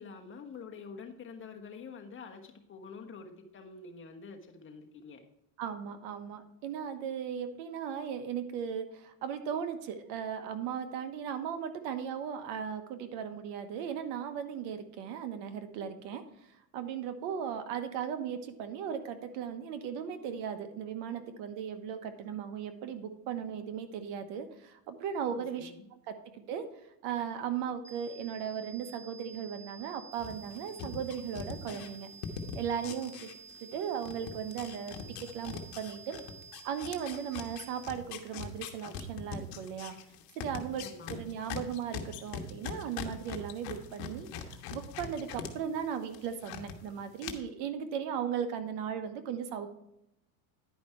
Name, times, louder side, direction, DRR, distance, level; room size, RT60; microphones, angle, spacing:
voice 1, 0.0-5.2 25.3-25.9 40.8-41.3, left 5 dB, 30° left, 4 dB, 1.3 m, -47 dB
voice 2, 5.6-16.2 16.7-25.7 26.1-26.6 27.0-32.1 32.5-33.3 33.6-36.2 36.6-39.9 40.3-40.8 41.1-49.7, right 8 dB, 65° right, 9 dB, 1.2 m, -37 dB
sound 1, 27.8-37.8, right 6 dB, 5° left, 0.4 m, -52 dB
sound 2, 30.2-33.8 34.0-45.5 45.8-46.7 47.2-47.3, left 8 dB, 55° left, 1.4 m, -41 dB
10.5 x 5.2 x 4.4 m, 0.82 s
supercardioid pair, 120°, 43 cm